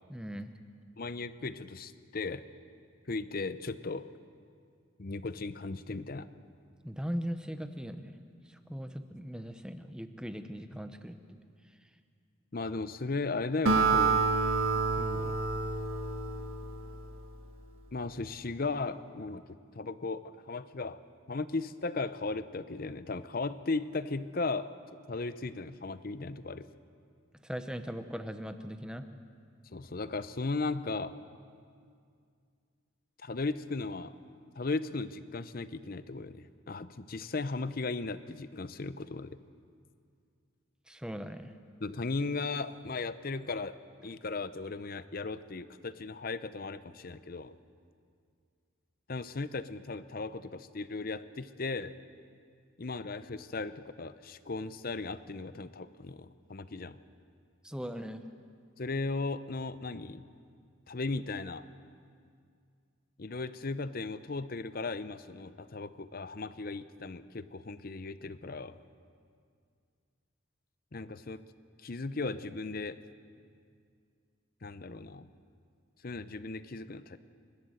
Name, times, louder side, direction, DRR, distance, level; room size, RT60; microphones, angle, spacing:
voice 1, 0.1-0.5 6.8-8.2 8.5-11.4 27.4-29.1 40.9-41.5 57.6-58.3, equal, 5° right, 9 dB, 0.8 m, -39 dB
voice 2, 1.0-2.4 3.1-4.1 5.0-6.3 12.5-14.1 15.0-15.3 17.9-19.4 19.7-21.0 21.3-24.7 25.1-26.7 29.7-31.1 33.2-34.1 34.6-39.4 41.8-47.5 49.1-51.9 52.8-57.0 58.8-60.3 60.9-61.7 63.2-68.8 70.9-71.4 71.8-73.0 74.6-75.3 76.0-77.2, left 3 dB, 45° left, 13 dB, 0.7 m, -36 dB
Acoustic guitar, 13.7-17.2, right 4 dB, 85° right, 1.5 m, -28 dB
28.0 x 12.0 x 7.9 m, 2.2 s
head